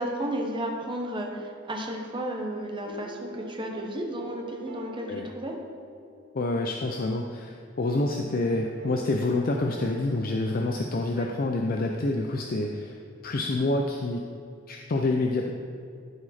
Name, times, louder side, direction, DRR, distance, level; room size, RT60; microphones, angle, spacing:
voice 1, 0.0-5.5 11.1-11.3, right 1 dB, 25° right, 1 dB, 1.0 m, -33 dB
sound 1, 2.8-6.9 7.9-11.5 12.9-13.0, equal, 55° right, 1.2 m, -46 dB
voice 2, 6.3-13.0 13.2-14.2 14.7-15.5, left 2 dB, 45° left, 2 dB, 0.5 m, -27 dB
12.5 x 4.9 x 4.2 m, 2.3 s
head